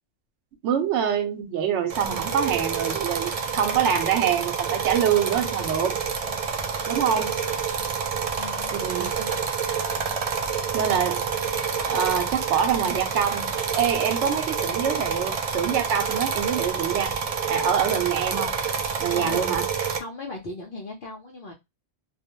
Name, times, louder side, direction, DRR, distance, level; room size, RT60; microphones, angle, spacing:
voice 1, 0.6-6.0 6.9-7.4 8.8-9.3 10.7-11.3 11.9-13.5 13.8-17.1 17.5-18.5 19.0-19.6, right 8 dB, 90° right, 0.9 m, -25 dB
sound 1, 1.9-20.0, right 6 dB, 60° right, 0.4 m, -28 dB
voice 2, 8.4-8.7 19.1-19.6 19.9-21.5, left 2 dB, 55° left, 0.7 m, -37 dB
2.4 x 2.1 x 2.8 m
omnidirectional pair, 1.2 m